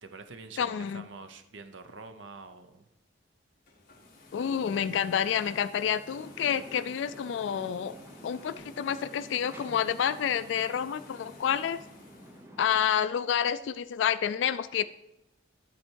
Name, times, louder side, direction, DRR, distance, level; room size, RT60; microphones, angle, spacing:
voice 1, 0.0-2.9, right 4 dB, 65° right, 9 dB, 0.7 m, -46 dB
voice 2, 0.6-1.0 4.3-8.0 8.2-11.8 12.6-14.8, left 8 dB, 65° left, 13 dB, 0.3 m, -29 dB
sound 1, 3.6-12.5, left 2 dB, 45° left, 1.7 m, -54 dB
sound 2, 6.1-12.8, equal, 15° right, 0.9 m, -50 dB
11.5 x 4.3 x 4.6 m, 0.90 s
head